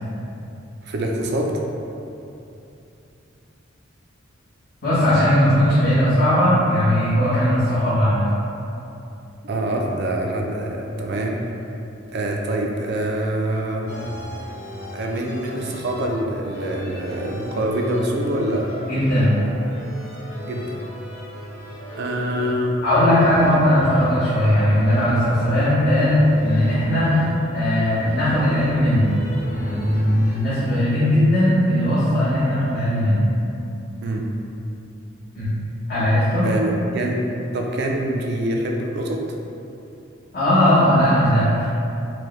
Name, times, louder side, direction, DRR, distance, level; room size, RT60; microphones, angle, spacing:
voice 1, 0.8-1.5 9.4-11.3 12.1-14.0 14.9-18.7 20.5-20.8 21.9-23.0 34.0-34.2 36.4-37.2 37.5-39.2, right 1 dB, 55° right, 1 dB, 0.4 m, -25 dB
voice 2, 4.8-8.2 18.9-19.3 22.8-27.1 27.5-29.1 29.5-33.2 35.3-35.5 35.9-36.5 40.3-41.7, equal, 50° left, -15 dB, 1.2 m, -18 dB
sound 1, 13.9-30.4, equal, 65° left, 0.9 m, -36 dB
4.5 x 2.2 x 3.1 m, 2.8 s
head